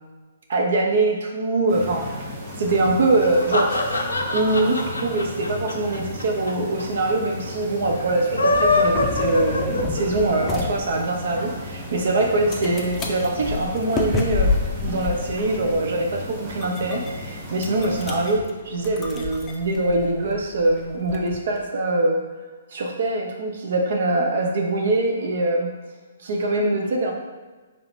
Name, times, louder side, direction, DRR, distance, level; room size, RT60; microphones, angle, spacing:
voice 1, 0.5-2.1 2.6-3.7 4.3-14.5 14.7-22.2 22.7-25.7 26.2-27.1, right 2 dB, 60° right, 1 dB, 0.6 m, -23 dB
sound 1, 1.7-18.4, left 1 dB, 35° right, 1.0 m, -35 dB
sound 2, 3.2-6.5 6.8-6.9 7.1-7.2 8.2-10.3, left 2 dB, 85° left, 0.6 m, -23 dB
sound 3, 8.5-21.7, left 4 dB, 15° left, 0.5 m, -30 dB
3.3 x 2.8 x 4.0 m, 1.3 s
figure-of-eight pair, 130°, 0 cm